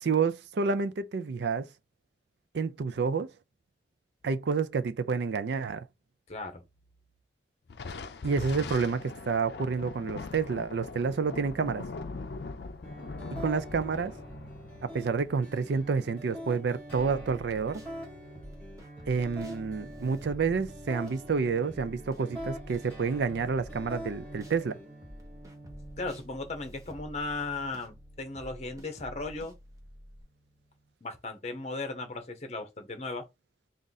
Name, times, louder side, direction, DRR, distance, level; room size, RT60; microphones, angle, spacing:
voice 1, 0.0-1.7 2.5-3.3 4.2-5.8 8.2-11.8 13.4-14.1 14.8-17.8 19.1-24.8, right 5 dB, 70° right, 0.4 m, -29 dB
voice 2, 6.3-6.6 26.0-29.5 31.0-33.2, left 3 dB, 35° left, 0.8 m, -36 dB
Thunder, 7.7-16.5, left 3 dB, 65° left, 0.5 m, -41 dB
sound 1, 12.8-30.8, equal, 10° left, 2.1 m, -46 dB
sound 2, 16.9-17.9 18.4-24.6 25.0-30.2, equal, 20° right, 0.8 m, -49 dB
3.7 x 2.5 x 4.0 m
head